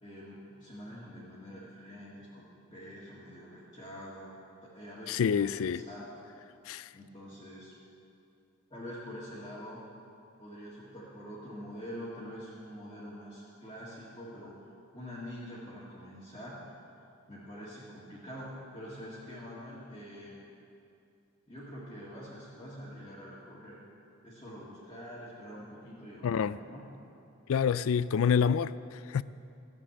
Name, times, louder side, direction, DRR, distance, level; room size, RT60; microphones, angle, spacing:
voice 1, 0.0-4.3 4.6-6.1 6.9-7.7 8.7-9.8 10.4-14.5 14.9-16.6 17.3-20.4 21.5-23.8 24.2-26.8, equal, 20° left, 1.8 m, -45 dB
voice 2, 5.1-5.8 6.7-6.9 26.2-26.6 27.5-29.2, left 7 dB, 65° left, 0.3 m, -27 dB
13.5 x 7.4 x 8.5 m
head